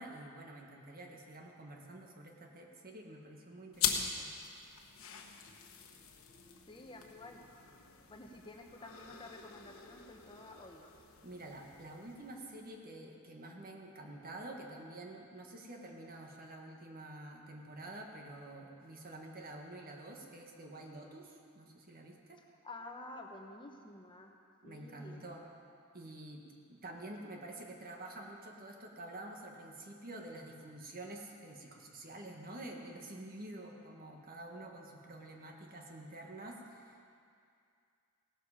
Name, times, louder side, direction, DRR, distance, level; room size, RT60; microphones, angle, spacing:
voice 1, 0.0-4.3 11.2-22.4 24.6-25.4 25.9-26.4 26.7-37.0, right 1 dB, 45° right, 1 dB, 1.6 m, -48 dB
sound 1, 3.7-12.7, left 7 dB, 75° left, 1.2 m, -42 dB
voice 2, 6.7-7.4 8.1-10.9 22.6-24.3 24.6-25.2, left 2 dB, 25° left, 2 dB, 1.0 m, -50 dB
17.0 x 12.5 x 5.0 m, 2.4 s
head